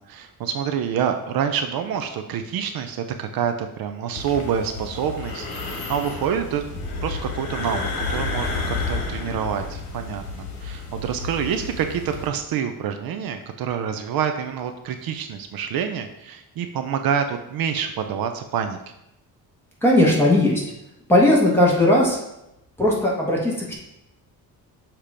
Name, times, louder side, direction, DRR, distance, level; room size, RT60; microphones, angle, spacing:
voice 1, 0.0-18.8, right 8 dB, 65° right, 6 dB, 0.6 m, -27 dB
sound 1, 4.2-12.3, left 3 dB, 65° left, 1.5 m, -31 dB
voice 2, 19.8-20.6 21.1-22.2 22.8-23.7, left 1 dB, 5° left, -4 dB, 1.5 m, -17 dB
6.7 x 2.9 x 5.0 m, 0.86 s
cardioid pair, 155°, 39 cm